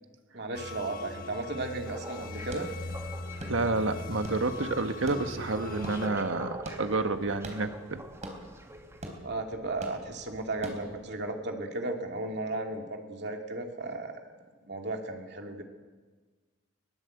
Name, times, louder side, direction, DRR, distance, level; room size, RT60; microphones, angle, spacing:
voice 1, 0.3-2.7 9.2-14.1 14.6-15.6, right 2 dB, 60° right, 3 dB, 2.6 m, -35 dB
sound 1, 0.5-6.1, left 3 dB, 45° left, 1.3 m, -41 dB
sound 2, 1.9-9.1, right 1 dB, 15° right, 1.6 m, -45 dB
sound 3, 2.1-11.1, right 1 dB, 40° right, 3.9 m, -46 dB
voice 2, 3.5-8.0, right 3 dB, 85° right, 8 dB, 1.5 m, -29 dB
21.0 x 20.0 x 8.0 m, 1.4 s
head